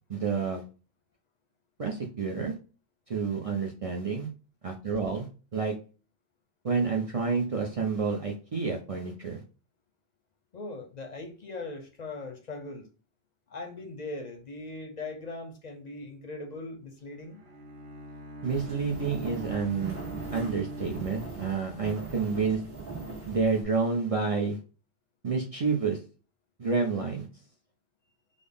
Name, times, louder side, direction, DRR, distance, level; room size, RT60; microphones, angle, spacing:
voice 1, 0.1-0.6 1.8-2.5 3.1-4.3 4.6-5.7 6.6-9.4 18.4-20.0 20.3-22.6 23.3-24.6 25.2-26.0 26.6-27.3, right 5 dB, 45° right, 1 dB, 0.5 m, -29 dB
voice 2, 10.5-12.9 13.5-17.4, left 2 dB, 50° left, 3 dB, 0.6 m, -40 dB
Bowed string instrument, 17.2-21.9, right 1 dB, 85° right, 1.0 m, -42 dB
sound 1, 18.5-23.6, right 3 dB, 60° right, 1.3 m, -41 dB
3.7 x 2.0 x 3.4 m, 0.35 s
omnidirectional pair, 1.0 m